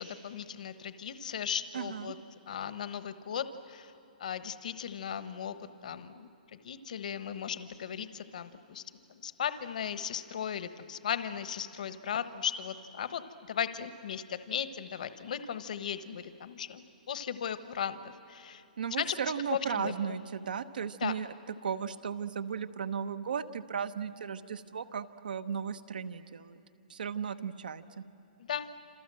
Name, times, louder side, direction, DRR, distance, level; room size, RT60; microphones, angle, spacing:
voice 1, 0.0-2.1 2.5-3.9 4.2-13.2 13.5-18.6 18.9-19.2 19.5-20.2 21.0-21.2 28.4-28.7, left 8 dB, 55° left, 12 dB, 1.1 m, -37 dB
voice 2, 1.7-2.1 18.8-21.3 21.6-26.6 26.9-28.0, right 7 dB, 75° right, 10 dB, 1.1 m, -35 dB
28.0 x 28.0 x 7.7 m, 2.9 s
hypercardioid pair, 175°, 5 cm